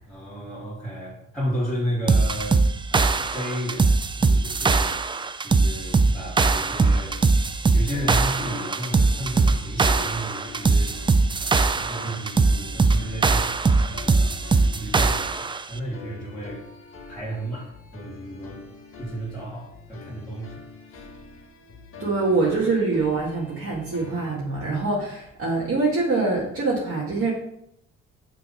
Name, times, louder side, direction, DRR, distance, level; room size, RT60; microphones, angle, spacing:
voice 1, 0.1-2.6 2.9-13.6 13.9-16.6 17.1-21.1, right 1 dB, ahead, -10 dB, 2.4 m, -33 dB
sound 1, 2.1-15.6, right 4 dB, 15° right, 0.3 m, -21 dB
sound 2, 7.1-24.4, left 4 dB, 45° left, 1.4 m, -45 dB
voice 2, 22.0-27.3, right 3 dB, 50° right, -5 dB, 1.7 m, -24 dB
6.2 x 3.4 x 5.5 m, 0.73 s
cardioid pair, 90°, 30 cm